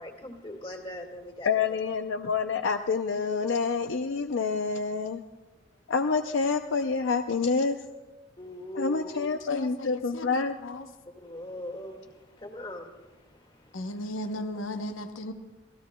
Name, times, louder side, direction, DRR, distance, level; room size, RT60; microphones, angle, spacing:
voice 1, 0.0-1.8 8.4-9.3 11.1-14.4, equal, 25° left, 1.9 m, -41 dB
voice 2, 1.4-5.2 5.9-7.8 8.8-10.6, left 5 dB, 75° left, 0.5 m, -27 dB
voice 3, 9.5-10.9 13.7-15.3, left 1 dB, 90° left, 0.9 m, -36 dB
27.0 x 16.5 x 2.2 m
head